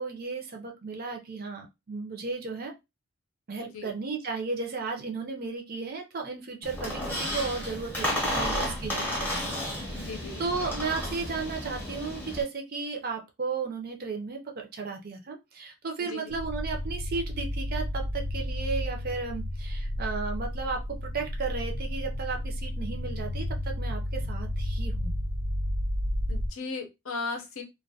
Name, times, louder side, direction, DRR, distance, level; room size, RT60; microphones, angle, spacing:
voice 1, 0.0-2.7 3.5-9.9 10.4-25.1, right 4 dB, 45° right, 3 dB, 0.5 m, -34 dB
Squeak, 6.6-12.4, left 1 dB, 10° left, 0.6 m, -32 dB
voice 2, 10.0-10.4 16.0-16.3 26.3-27.6, left 3 dB, 70° left, 4 dB, 0.6 m, -36 dB
sound 1, 16.3-26.5, left 1 dB, 90° right, 0.5 m, -32 dB
2.2 x 2.2 x 2.7 m, 0.23 s
head